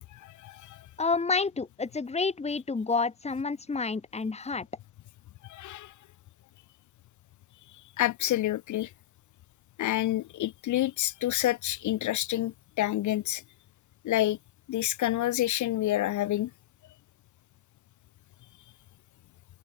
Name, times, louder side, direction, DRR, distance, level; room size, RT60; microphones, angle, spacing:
voice 1, 0.1-0.8 5.5-5.9 8.0-8.9 9.8-13.4 14.0-14.4 14.7-16.5, left 14 dB, 70° left, 3.4 m, -28 dB
voice 2, 1.0-4.7, left 4 dB, 20° left, 2.7 m, -29 dB
open air
cardioid pair, 90°, 31 cm